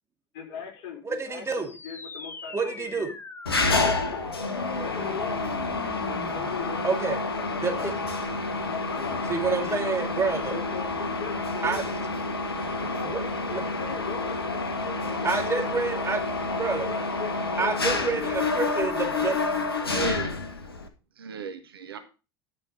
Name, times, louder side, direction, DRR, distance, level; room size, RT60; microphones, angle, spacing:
voice 1, 0.3-3.1 3.8-4.2 4.7-5.4 5.8-7.9 8.4-9.9 10.5-11.9 12.7-16.1 16.8-18.6, left 7 dB, 55° left, 1 dB, 4.4 m, -40 dB
voice 2, 1.0-1.7 2.5-3.2 6.8-7.2 7.6-7.9 9.3-10.6 11.6-11.8 13.0-13.2 13.5-13.6 15.2-16.2 16.6-16.9 17.6-19.4, right 4 dB, 20° right, 4 dB, 2.4 m, -28 dB
sound 1, 1.6-6.6, left 3 dB, 15° left, 1.2 m, -42 dB
Mechanisms, 3.5-20.9, left 3 dB, 85° left, 1.3 m, -29 dB
voice 3, 19.8-20.3 21.2-22.0, right 3 dB, 75° right, 7 dB, 1.5 m, -34 dB
11.5 x 6.2 x 5.0 m, 0.31 s
figure-of-eight pair, 70°, 12 cm